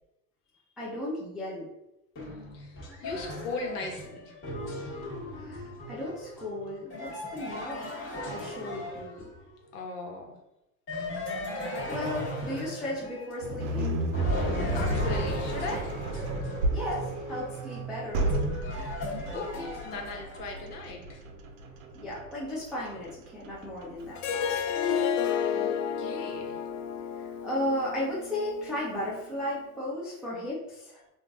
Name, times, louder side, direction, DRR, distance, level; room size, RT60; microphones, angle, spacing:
voice 1, 0.8-1.7 5.3-7.9 8.2-9.3 11.9-14.0 16.7-18.3 21.9-24.2 27.1-31.0, left 1 dB, ahead, -7 dB, 0.3 m, -35 dB
sound 1, 2.2-9.6 10.9-13.7 14.1-20.6, left 1 dB, 25° left, 1.2 m, -36 dB
voice 2, 2.5-4.4 9.7-10.3 14.7-16.0 18.9-21.2 25.5-26.6, left 3 dB, 80° left, 1 dB, 1.1 m, -38 dB
sound 2, 13.4-24.6, right 2 dB, 55° right, 0.6 m, -33 dB
Harp, 24.2-29.3, left 7 dB, 60° left, 0.5 m, -31 dB
3.7 x 2.5 x 2.3 m, 0.89 s
hypercardioid pair, 115°, 45 cm